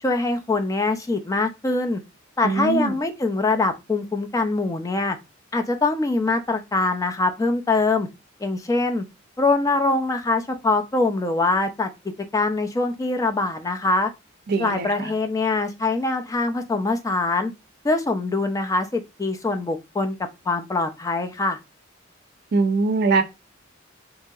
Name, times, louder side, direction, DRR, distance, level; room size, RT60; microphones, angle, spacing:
voice 1, 0.0-2.0 2.4-5.2 5.5-8.1 8.4-9.0 9.4-11.9 12.3-14.1 14.6-17.5 17.8-20.2 20.5-21.6, left 3 dB, 15° left, 0.3 m, -23 dB
voice 2, 2.4-2.9 14.5-15.1 22.5-23.2, right 3 dB, 55° right, 0.5 m, -22 dB
2.9 x 2.7 x 2.3 m
head